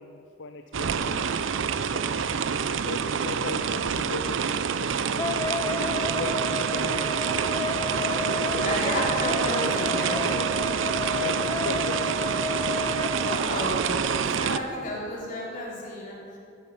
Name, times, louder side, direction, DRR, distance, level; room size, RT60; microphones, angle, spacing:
voice 1, 0.0-1.4 1.9-4.4 4.8-7.4 8.1-8.8 11.1-12.3, left 4 dB, 70° left, 7 dB, 0.5 m, -38 dB
sound 1, 0.7-14.6, right 6 dB, 80° right, 0.5 m, -27 dB
Wind instrument woodwind instrument, 5.2-13.4, left 3 dB, 20° left, 0.4 m, -32 dB
voice 2, 8.6-10.4 13.2-16.4, left 1 dB, 45° left, -4 dB, 3.7 m, -32 dB
14.5 x 11.0 x 5.5 m, 2.5 s
head